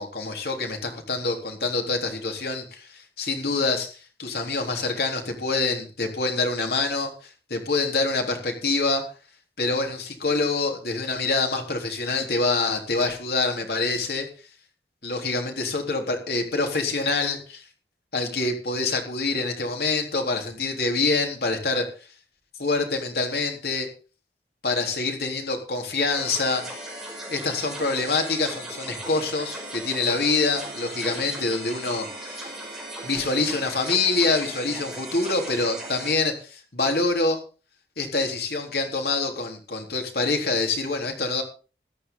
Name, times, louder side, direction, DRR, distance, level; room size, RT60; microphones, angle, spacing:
voice 1, 0.0-9.0 9.6-14.3 15.0-17.6 18.1-21.9 22.6-23.9 24.6-26.6 27.3-32.6 33.0-37.4 38.0-41.4, left 3 dB, 65° left, 3 dB, 3.7 m, -26 dB
sound 1, 26.1-36.1, right 1 dB, 5° right, 5.0 m, -37 dB
14.0 x 13.0 x 3.9 m, 0.34 s
head